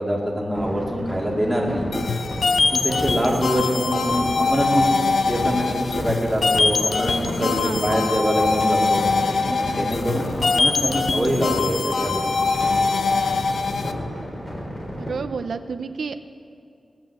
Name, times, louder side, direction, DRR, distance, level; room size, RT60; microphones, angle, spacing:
voice 1, 0.0-1.9 2.7-4.9 5.2-9.0 9.5-12.5, equal, 5° right, -3 dB, 2.3 m, -24 dB
sound 1, 0.6-15.1, equal, 25° left, 3.5 m, -33 dB
sound 2, 1.9-13.9, left 4 dB, 65° left, 0.6 m, -23 dB
voice 2, 7.4-7.9 15.0-16.2, right 5 dB, 75° right, 10 dB, 0.7 m, -30 dB
17.0 x 9.0 x 6.7 m, 2.3 s
wide cardioid pair, 130°, 0 cm